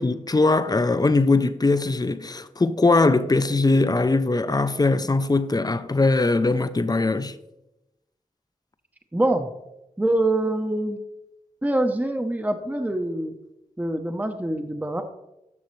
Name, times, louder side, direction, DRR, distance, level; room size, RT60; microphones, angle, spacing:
voice 1, 0.0-7.3, left 3 dB, 30° left, 0.5 m, -21 dB
voice 2, 9.1-9.5 10.0-11.0 11.6-13.3 13.8-15.0, right 1 dB, 10° right, 0.7 m, -24 dB
10.5 x 6.3 x 3.2 m
cardioid pair, 45°, 14 cm